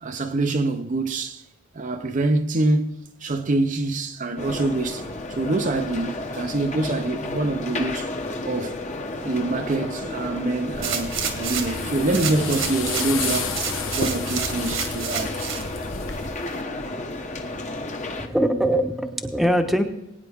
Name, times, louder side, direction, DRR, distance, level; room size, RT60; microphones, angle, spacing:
voice 1, 0.0-1.4 1.7-2.9 3.2-8.1 8.4-8.8 9.2-13.6 14.0-15.3, right 2 dB, 40° right, 0.7 m, -25 dB
sound 1, 4.4-18.3, left 2 dB, 40° left, 1.3 m, -32 dB
sound 2, 10.7-16.3, left 5 dB, 80° left, 1.3 m, -32 dB
sound 3, 10.8-11.8 12.1-15.6 16.1-16.2, right 7 dB, 80° right, 2.0 m, -30 dB
voice 2, 18.2-19.8, equal, ahead, 1.0 m, -22 dB
21.0 x 9.5 x 3.6 m
head